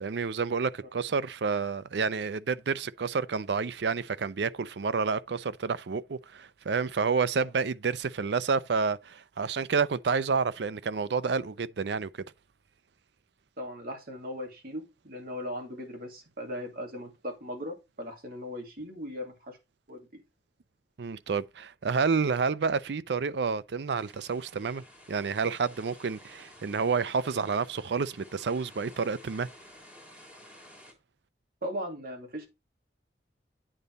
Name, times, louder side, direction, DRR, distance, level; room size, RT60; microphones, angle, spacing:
voice 1, 0.0-12.1 21.0-24.8 25.1-29.5, right 5 dB, 70° right, 0.5 m, -29 dB
voice 2, 13.6-19.6 19.9-20.2 31.6-32.5, equal, 55° right, 2.6 m, -38 dB
sound 1, 23.9-30.9, left 1 dB, 10° right, 2.6 m, -53 dB
8.9 x 4.0 x 5.2 m
head